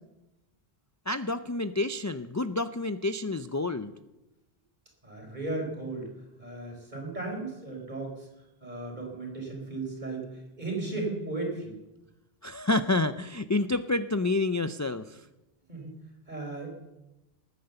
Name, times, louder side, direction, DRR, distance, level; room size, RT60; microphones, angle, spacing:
voice 1, 1.1-3.9 12.4-15.3, left 2 dB, 30° left, 11 dB, 0.3 m, -29 dB
voice 2, 5.0-6.1 6.4-8.3 8.6-10.3 10.6-11.8 15.7-15.9 16.3-16.7, right 2 dB, 45° right, 0 dB, 4.4 m, -35 dB
20.0 x 9.3 x 6.9 m, 0.99 s
omnidirectional pair, 1.1 m